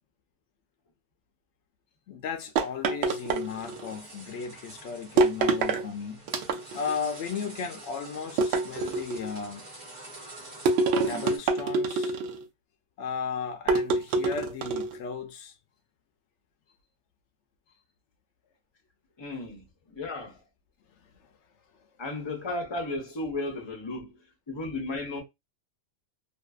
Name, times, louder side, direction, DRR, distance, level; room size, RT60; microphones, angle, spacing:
voice 1, 2.1-6.2 6.7-9.6 11.0-12.2 13.0-15.5 21.0-21.1, left 6 dB, 65° left, 0.8 m, -35 dB
sound 1, 2.6-3.9 5.2-5.8 6.3-7.0 8.4-9.3 10.7-12.4 13.7-15.0, right 3 dB, 65° right, 0.7 m, -26 dB
sound 2, 3.0-11.4, right 2 dB, 40° right, 0.8 m, -47 dB
voice 2, 19.2-20.4 22.0-24.2 24.5-25.2, left 2 dB, 25° left, 0.6 m, -34 dB
2.7 x 2.5 x 2.3 m
omnidirectional pair, 1.4 m